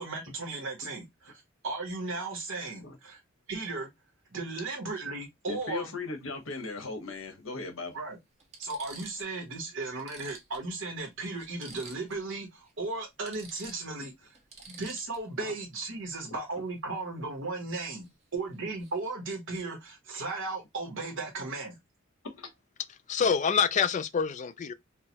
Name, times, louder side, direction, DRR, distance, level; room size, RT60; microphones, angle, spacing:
voice 1, 0.0-3.2 3.5-3.9 4.3-5.9 7.9-8.2 8.6-14.4 14.7-18.1 18.3-21.8, right 3 dB, 65° right, 1.1 m, -36 dB
voice 2, 5.5-7.9 15.4-15.5 22.2-22.5, left 3 dB, 75° left, 1.1 m, -38 dB
Spieluhr-aufziehen, 5.5-5.7 7.1-7.2 7.9-8.0 8.4-9.3 9.7-9.8 10.0-12.3 12.6-12.7 13.0-15.4 18.0-18.2 18.5-19.0, right 4 dB, 35° right, 0.9 m, -50 dB
voice 3, 23.1-24.7, left 6 dB, 35° left, 0.3 m, -26 dB
4.6 x 2.1 x 2.8 m
head